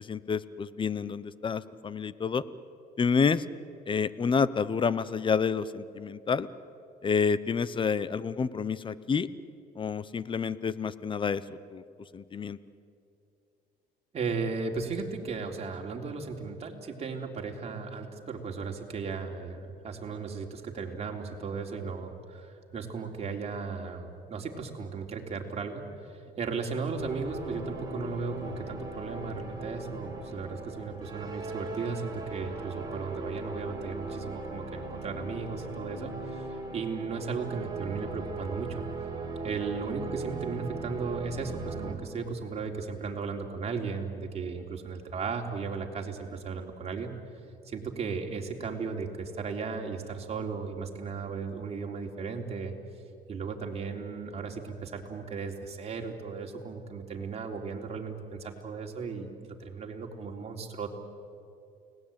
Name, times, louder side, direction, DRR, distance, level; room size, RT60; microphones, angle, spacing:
voice 1, 0.0-2.4 3.0-3.4 3.9-6.5 7.0-9.3 9.8-11.4 11.7-11.8 12.1-12.6, left 5 dB, 30° left, 17 dB, 0.9 m, -28 dB
voice 2, 14.1-38.8 39.4-47.2 47.6-52.7 53.3-61.0, right 5 dB, 40° right, 1 dB, 3.5 m, -36 dB
sound 1, 27.0-41.9, right 3 dB, 25° right, 4.5 m, -38 dB
29.5 x 19.5 x 8.9 m, 2.6 s
cardioid pair, 110°, 17 cm